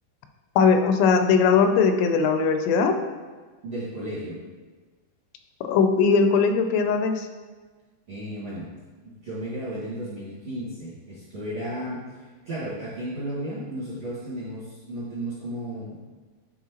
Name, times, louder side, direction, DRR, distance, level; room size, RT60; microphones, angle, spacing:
voice 1, 0.6-3.0 5.6-7.3, left 5 dB, 85° left, 6 dB, 2.7 m, -20 dB
voice 2, 3.6-4.4 8.1-8.7 9.0-16.0, right 1 dB, 55° right, -10 dB, 1.5 m, -34 dB
9.3 x 4.4 x 2.9 m, 1.4 s
omnidirectional pair, 4.9 m